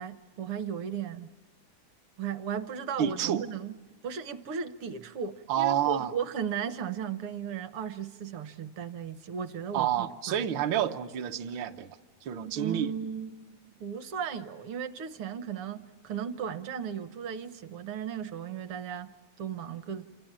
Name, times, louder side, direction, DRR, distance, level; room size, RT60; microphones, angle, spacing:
voice 1, 0.0-1.3 2.2-3.8 4.0-10.5 12.4-20.1, right 7 dB, 65° right, 1.4 m, -36 dB
voice 2, 3.0-3.4 5.5-6.1 9.7-12.9, right 10 dB, 85° right, 1.0 m, -29 dB
28.0 x 25.0 x 7.4 m
omnidirectional pair, 3.5 m